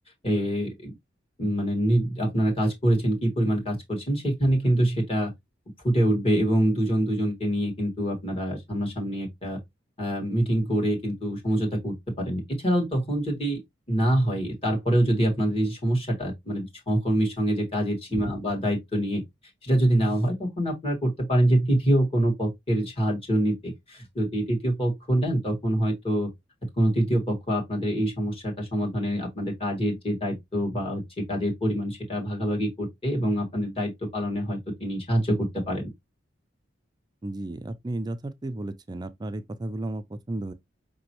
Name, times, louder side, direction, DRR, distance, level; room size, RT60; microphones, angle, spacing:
voice 1, 0.2-0.9 1.4-5.3 5.8-9.6 10.0-13.6 13.9-19.2 19.6-26.3 26.8-35.9, right 1 dB, 30° left, 1.6 m, -25 dB
voice 2, 37.2-40.5, right 1 dB, 25° right, 0.4 m, -33 dB
5.3 x 3.0 x 2.9 m
head